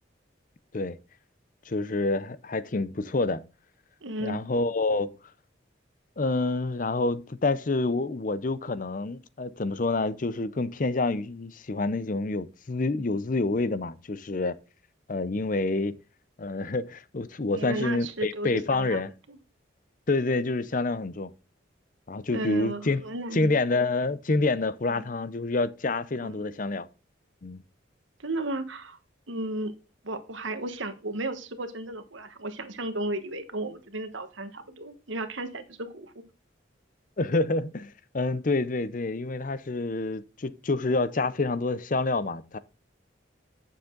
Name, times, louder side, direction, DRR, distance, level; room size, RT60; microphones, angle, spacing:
voice 1, 1.7-3.4 4.2-5.1 6.2-14.6 15.1-16.0 16.4-19.1 20.1-21.3 22.1-23.0 23.3-26.9 27.4-27.6 37.2-42.6, left 3 dB, 40° left, 0.6 m, -27 dB
voice 2, 4.0-4.4 17.5-19.0 19.3-19.4 22.3-23.6 24.9-25.0 26.2-26.4 28.2-29.0 29.3-29.7 30.0-36.1, right 1 dB, 80° right, 1.4 m, -34 dB
9.1 x 7.2 x 3.8 m
head